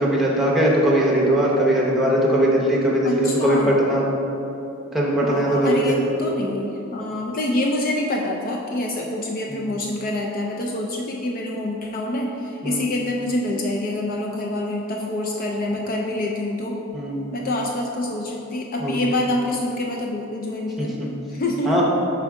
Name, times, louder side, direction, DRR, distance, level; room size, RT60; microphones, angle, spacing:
voice 1, 0.0-4.0 4.9-6.1 9.5-9.6 12.6-12.8 16.9-17.3 18.8-19.0 20.8-21.1 21.7-21.8, right 1 dB, ahead, -5 dB, 0.8 m, -20 dB
voice 2, 3.0-3.7 5.2-16.8 17.3-21.8, left 1 dB, 40° left, 0 dB, 0.4 m, -26 dB
6.1 x 4.4 x 3.5 m, 2.9 s
head